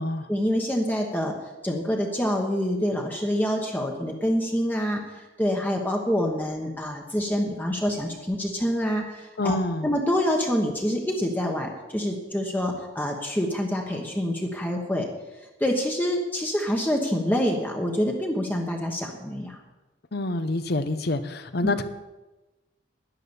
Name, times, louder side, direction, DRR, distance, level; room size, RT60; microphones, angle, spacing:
voice 1, 0.3-1.3 1.6-9.6 9.8-15.1 15.6-19.6 21.6-21.7, equal, 10° left, 1 dB, 1.2 m, -26 dB
voice 2, 9.4-9.9 20.1-21.8, left 2 dB, 60° left, 11 dB, 0.9 m, -27 dB
10.5 x 10.5 x 7.2 m, 1.1 s
head